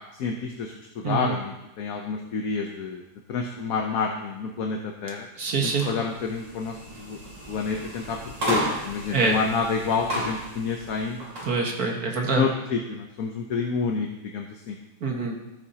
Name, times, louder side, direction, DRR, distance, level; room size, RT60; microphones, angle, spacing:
voice 1, 0.2-3.0 3.3-5.3 5.6-7.2 7.5-11.2 12.4-14.7, left 5 dB, 60° left, 1 dB, 1.2 m, -29 dB
voice 2, 1.0-1.4 5.4-5.9 9.1-9.4 11.4-12.5 15.0-15.4, right 4 dB, 60° right, 0 dB, 1.9 m, -25 dB
sound 1, 5.7-11.5, right 1 dB, 85° right, 3.7 m, -33 dB
13.5 x 8.7 x 2.9 m, 0.94 s
omnidirectional pair, 1.9 m